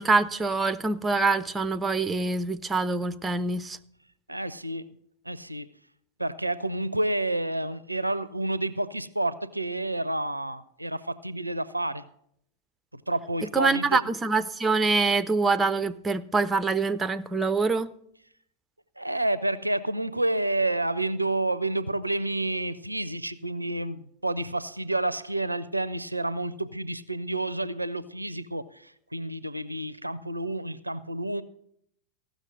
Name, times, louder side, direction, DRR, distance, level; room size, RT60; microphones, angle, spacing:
voice 1, 0.0-3.8 13.5-17.9, right 3 dB, 15° right, 15 dB, 0.5 m, -25 dB
voice 2, 4.3-4.9 5.3-5.7 6.2-12.0 12.9-14.0 19.0-31.4, right 2 dB, 85° right, 17 dB, 0.4 m, -29 dB
15.0 x 6.2 x 6.4 m, 0.72 s
figure-of-eight pair, 90°, 0 cm